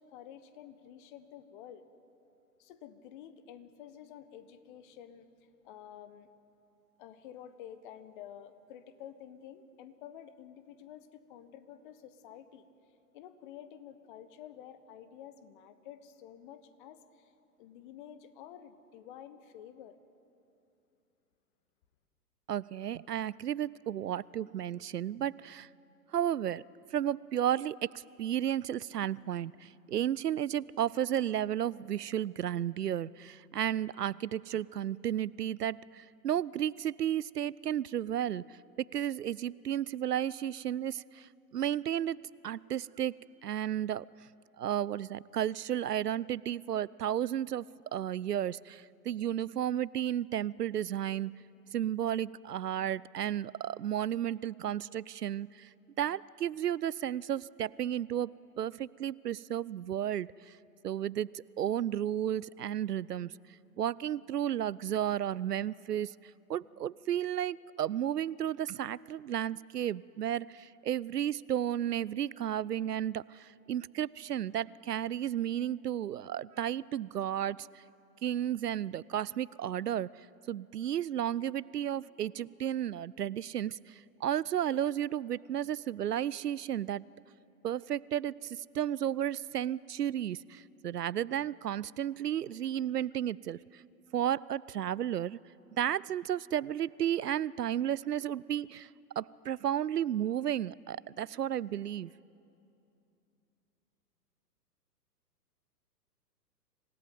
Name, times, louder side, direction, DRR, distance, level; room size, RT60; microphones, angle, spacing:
voice 1, 0.0-1.8 2.6-6.3 7.0-12.7 13.1-17.3 17.6-20.0, left 10 dB, 30° left, 12 dB, 1.3 m, -50 dB
voice 2, 22.5-25.7 26.1-26.6 26.9-38.6 38.9-43.1 43.4-44.1 44.6-47.7 47.9-51.3 51.7-55.7 56.0-58.3 58.6-60.6 60.8-63.3 63.8-77.8 78.2-87.0 87.6-93.8 94.1-95.4 95.8-98.9 99.2-102.1, right 10 dB, 70° right, 23 dB, 0.6 m, -33 dB
26.5 x 17.5 x 9.2 m, 2.7 s
figure-of-eight pair, 115°, 49 cm